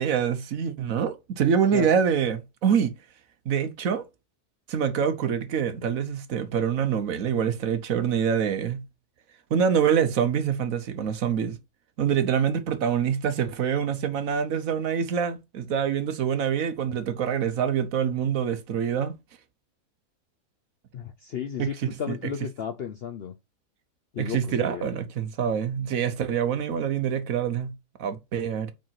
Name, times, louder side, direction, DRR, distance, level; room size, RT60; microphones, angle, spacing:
voice 1, 0.0-2.9 3.5-4.0 4.7-8.8 9.5-11.6 12.0-19.1 21.6-22.2 24.2-28.7, right 7 dB, 65° right, 1.2 m, -25 dB
voice 2, 20.9-23.3 24.1-25.0, left 8 dB, 60° left, 0.6 m, -34 dB
5.1 x 4.7 x 5.8 m
omnidirectional pair, 1.6 m